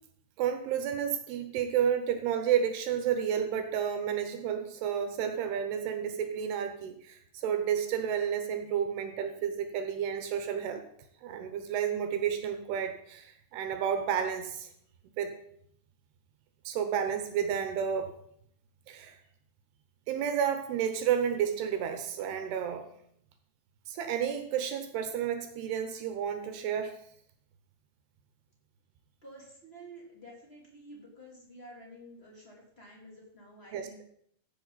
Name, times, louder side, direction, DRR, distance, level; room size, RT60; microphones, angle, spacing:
voice 1, 0.4-10.8 11.2-14.7 15.2-15.3 16.7-18.1 18.9-19.2 20.1-22.9 23.9-27.0 33.7-33.9, right 8 dB, 75° right, 7 dB, 2.8 m, -31 dB
voice 2, 29.2-34.0, right 1 dB, 15° left, -3 dB, 2.6 m, -50 dB
15.5 x 7.5 x 4.1 m, 0.68 s
omnidirectional pair, 5.1 m